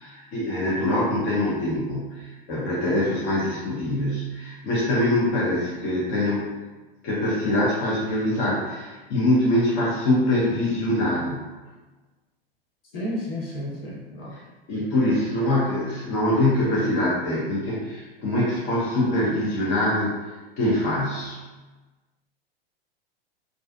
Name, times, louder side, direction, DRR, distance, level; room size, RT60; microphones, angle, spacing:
voice 1, 0.0-6.4 7.0-11.5 14.7-20.1 20.6-21.4, left 1 dB, 40° left, -7 dB, 0.8 m, -24 dB
voice 2, 12.9-14.3, left 1 dB, 70° left, -8 dB, 1.2 m, -32 dB
2.5 x 2.3 x 2.4 m, 1.2 s
figure-of-eight pair, 95°, 30 cm